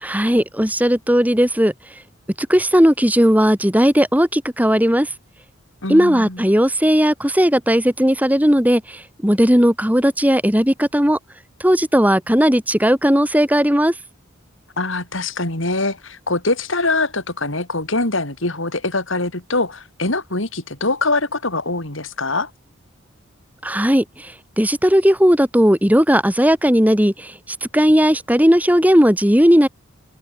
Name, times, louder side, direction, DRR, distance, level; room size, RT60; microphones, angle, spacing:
voice 1, 0.0-1.7 2.5-5.1 5.9-11.2 11.6-13.9 23.6-24.0 24.6-27.3 27.7-29.7, equal, 10° right, 3.3 m, -16 dB
voice 2, 5.8-6.5 14.8-22.5, left 2 dB, 70° left, 5.1 m, -23 dB
head